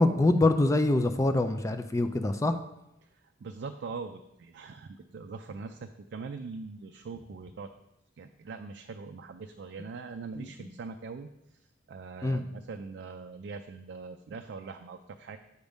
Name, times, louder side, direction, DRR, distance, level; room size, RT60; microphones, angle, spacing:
voice 1, 0.0-2.6 10.4-10.5 12.2-12.4, left 2 dB, 15° left, 8 dB, 0.3 m, -24 dB
voice 2, 3.4-7.7 8.2-15.4, right 4 dB, 60° right, 6 dB, 0.4 m, -42 dB
8.1 x 3.5 x 5.2 m, 0.86 s
head